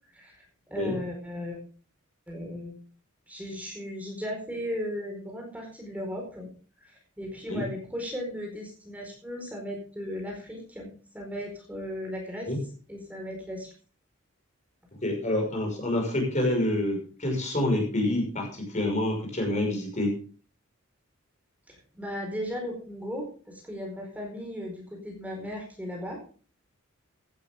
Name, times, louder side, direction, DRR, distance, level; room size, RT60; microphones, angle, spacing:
voice 1, 0.1-0.4 0.7-1.6 2.3-2.8 3.3-6.5 6.8-12.5 12.9-13.7 21.7-26.2, equal, 5° right, 0 dB, 4.7 m, -36 dB
voice 2, 15.0-20.2, left 1 dB, 35° left, 2 dB, 5.8 m, -27 dB
15.5 x 12.5 x 3.7 m, 0.39 s
head